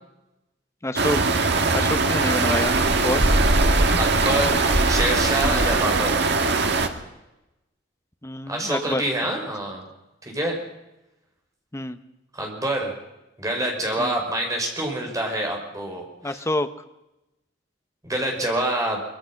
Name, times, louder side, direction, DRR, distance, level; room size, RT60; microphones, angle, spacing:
voice 1, 0.8-1.2 1.7-2.8 3.0-3.2 5.4-5.8 8.2-9.0 11.7-12.0 14.0-14.1 16.2-16.7, left 1 dB, 15° left, 9 dB, 1.0 m, -27 dB
sound 1, 1.0-6.9, right 3 dB, 60° right, 1.8 m, -20 dB
voice 2, 4.0-4.6 4.9-6.1 8.5-9.9 10.2-10.6 12.3-12.9 13.4-16.4 18.0-19.0, right 1 dB, 20° right, 1 dB, 5.2 m, -26 dB
23.5 x 23.0 x 5.9 m, 0.95 s
head